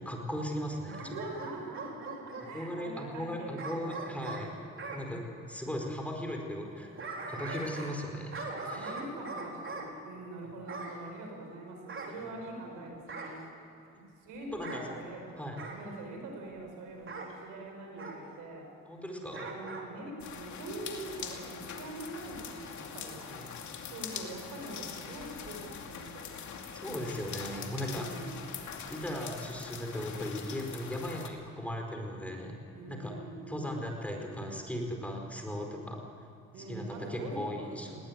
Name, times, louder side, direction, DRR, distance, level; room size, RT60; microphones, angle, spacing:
voice 1, 0.0-1.1 2.5-4.5 4.9-5.2 5.5-6.9 7.3-8.9 14.5-14.8 15.4-15.6 18.9-19.5 23.2-23.5 26.7-28.1 28.9-32.6 32.9-33.2 33.5-36.0 36.6-36.8 37.1-37.9, equal, 5° left, 2 dB, 4.7 m, -37 dB
Bark / Growling, 0.9-2.5 3.6-5.0 6.7-8.0 8.3-9.9 10.7-11.0 11.9-12.7 13.1-13.4 14.5-14.9 15.6-15.8 17.1-17.3 18.0-18.2 19.3-19.9 20.2-20.3, right 3 dB, 45° right, 4.2 m, -41 dB
voice 2, 1.0-3.8 4.0-4.7 8.6-13.4 14.2-18.7 19.4-23.4 23.9-26.5 27.6-28.4 32.7-33.9 36.5-38.0, right 2 dB, 90° right, 2 dB, 5.4 m, -44 dB
sound 1, 20.2-31.3, left 7 dB, 70° left, 2.6 m, -43 dB
19.5 x 18.5 x 9.4 m, 2.6 s
cardioid pair, 90°, 30 cm